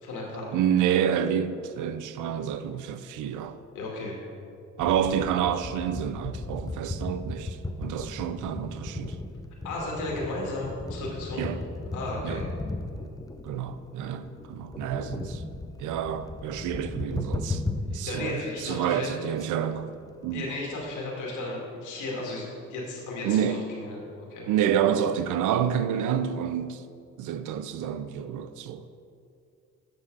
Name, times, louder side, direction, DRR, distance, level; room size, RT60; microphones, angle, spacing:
voice 1, 0.0-0.6 3.7-4.2 9.6-11.5 11.9-12.4 17.9-19.1 20.3-24.0 24.3-24.5, left 2 dB, 85° left, 2.1 m, -34 dB
voice 2, 0.5-3.6 4.8-9.2 11.4-11.6 12.2-12.4 13.4-15.4 15.8-17.6 17.9-19.9 20.2-20.5 23.2-23.8 24.5-26.8 27.2-28.9, right 9 dB, 80° right, 0.6 m, -28 dB
sound 1, 4.8-18.1 18.5-18.6 18.9-19.0 19.4-19.5 19.7-21.0, left 2 dB, 10° left, 0.5 m, -36 dB
7.4 x 6.2 x 6.1 m
cardioid pair, 90°, 30 cm